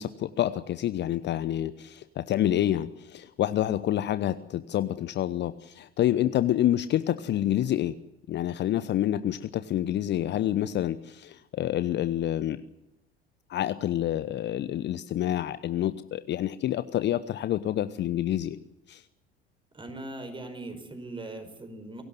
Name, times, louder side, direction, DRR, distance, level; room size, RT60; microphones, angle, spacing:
voice 1, 0.0-8.0 8.3-12.6 13.5-18.6 18.9-19.0, left 12 dB, 35° left, 14 dB, 0.9 m, -28 dB
voice 2, 19.7-22.0, right 2 dB, 15° right, 8 dB, 5.1 m, -40 dB
24.0 x 17.0 x 9.4 m, 0.89 s
figure-of-eight pair, 65°, 30 cm